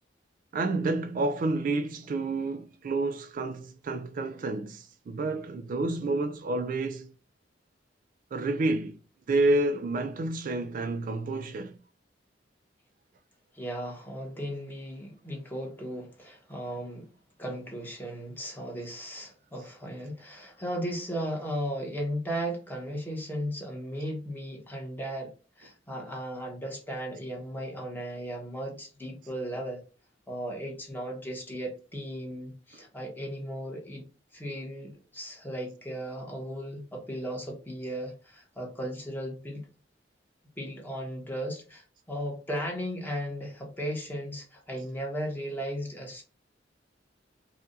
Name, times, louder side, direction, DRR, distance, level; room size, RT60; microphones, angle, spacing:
voice 1, 0.5-7.1 8.3-9.0 9.3-11.8, right 2 dB, 50° right, 0.3 m, -29 dB
voice 2, 13.5-17.1 17.4-29.8 30.3-34.0 34.3-39.6 40.6-46.2, equal, 10° left, 1.2 m, -36 dB
4.7 x 2.5 x 2.6 m
head